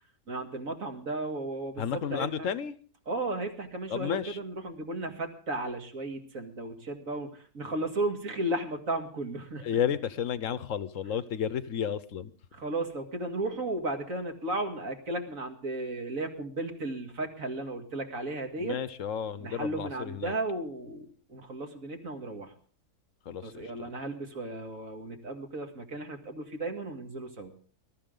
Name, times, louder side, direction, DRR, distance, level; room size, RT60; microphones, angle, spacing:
voice 1, 0.3-2.5 3.1-9.6 12.5-18.8 19.4-22.5 23.4-27.5, right 2 dB, 60° right, 2.5 m, -35 dB
voice 2, 1.8-2.8 3.9-4.4 9.6-12.3 18.6-20.3 23.3-24.0, left 8 dB, 60° left, 1.2 m, -32 dB
21.5 x 13.0 x 3.8 m
omnidirectional pair, 1.6 m